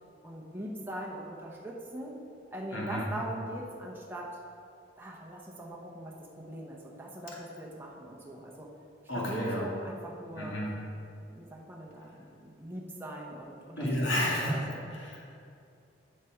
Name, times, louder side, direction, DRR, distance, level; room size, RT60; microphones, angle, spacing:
voice 1, 0.2-2.2 2.5-4.4 5.0-8.7 9.1-10.6 11.3-13.9 14.3-14.9, right 1 dB, 10° right, -3 dB, 0.8 m, -41 dB
voice 2, 2.7-3.1 9.1-9.7 10.4-10.7 13.8-15.4, left 1 dB, 80° left, -4 dB, 1.8 m, -32 dB
7.3 x 6.5 x 4.8 m, 2.5 s
head